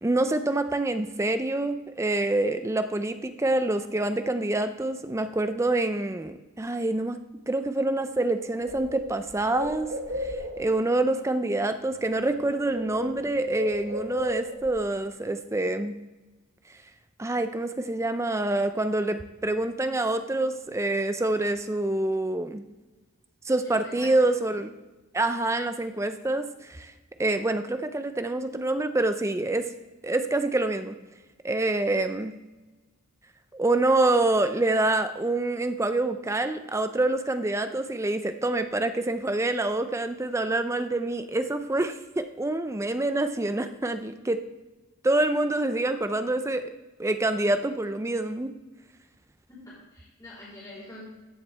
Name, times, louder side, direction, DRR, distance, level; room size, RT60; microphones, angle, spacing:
voice 1, 0.0-7.2 7.5-9.9 10.2-16.0 17.2-22.6 23.4-24.7 25.1-26.9 27.2-29.7 30.0-31.0 31.4-32.4 33.5-44.4 45.0-46.7 47.0-48.5, right 2 dB, 15° right, 9 dB, 0.4 m, -26 dB
Bird, 7.9-8.0 8.3-10.8 11.9-12.1 12.4-14.8, equal, 50° right, 1.5 m, -35 dB
voice 2, 23.7-24.3 49.5-51.0, left 1 dB, 15° left, -9 dB, 3.7 m, -44 dB
14.5 x 7.2 x 3.4 m, 1.2 s
head